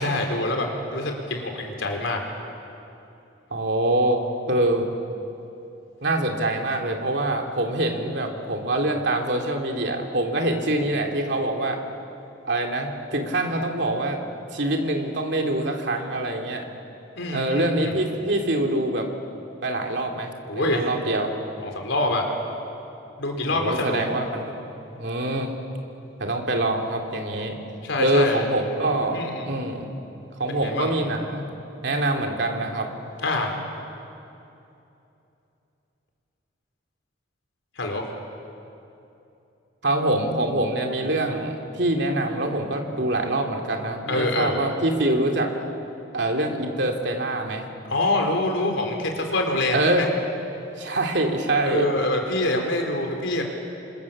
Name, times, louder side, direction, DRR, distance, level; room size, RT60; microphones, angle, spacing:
voice 1, 0.0-2.2 17.2-17.9 20.5-20.9 21.6-22.3 23.2-24.0 27.8-28.4 29.1-29.5 30.5-30.9 33.2-33.6 37.8-38.0 44.1-44.6 47.9-50.1 51.7-53.4, left 2 dB, 75° left, 2 dB, 4.0 m, -25 dB
voice 2, 3.5-4.9 6.0-11.8 12.4-14.2 14.5-16.6 17.3-19.1 19.6-21.3 23.5-24.5 24.9-25.5 26.2-27.5 28.0-29.9 30.4-31.4 31.8-32.9 39.8-45.5 46.1-47.6 49.7-50.1 50.8-51.9, right 1 dB, 60° right, 2 dB, 2.8 m, -25 dB
27.0 x 25.5 x 7.4 m, 2.8 s
head